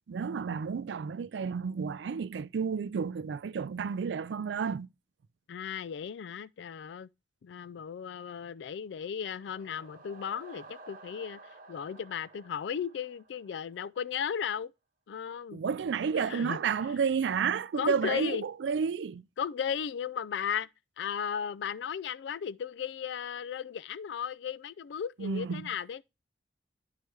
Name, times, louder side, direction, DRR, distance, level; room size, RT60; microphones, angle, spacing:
voice 1, 0.1-4.9 15.5-19.2 25.2-25.6, right 6 dB, 85° right, 0.4 m, -31 dB
voice 2, 5.5-7.1 7.4-14.7 15.1-15.6 16.1-16.6 17.8-18.4 19.4-20.7 21.0-26.0, left 7 dB, 85° left, 0.3 m, -35 dB
sound 1, 9.0-13.9, right 3 dB, 50° right, 1.0 m, -53 dB
10.5 x 4.7 x 3.1 m
head